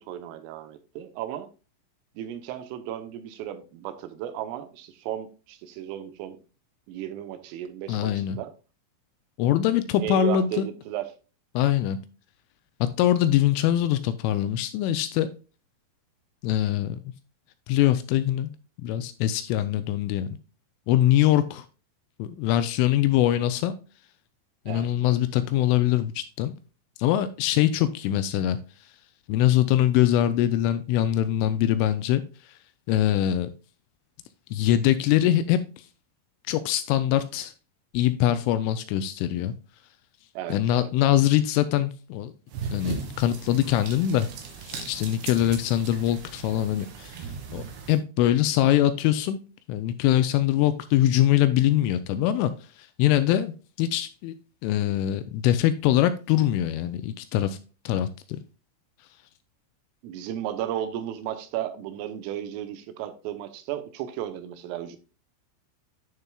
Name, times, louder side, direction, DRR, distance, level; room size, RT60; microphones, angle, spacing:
voice 1, 0.0-1.5 2.2-6.4 6.9-8.5 10.0-11.1 24.7-25.2 40.4-40.9 60.0-65.0, right 11 dB, 80° right, 10 dB, 3.3 m, -34 dB
voice 2, 7.9-8.4 9.4-10.7 11.6-12.0 12.8-15.3 16.4-17.0 17.7-18.5 18.8-20.4 20.9-21.7 22.2-23.7 24.7-26.5 27.0-28.6 29.3-32.2 32.9-33.5 34.5-35.6 36.5-37.5 37.9-39.5 40.5-42.3 42.7-44.3 44.6-47.3 47.5-49.4 49.7-52.5 52.8-54.3 54.6-57.6 57.9-58.4, left 12 dB, 85° left, 12 dB, 2.9 m, -23 dB
sound 1, 42.5-48.0, right 6 dB, 65° right, 3.2 m, -38 dB
10.5 x 6.6 x 2.3 m, 0.34 s
omnidirectional pair, 5.9 m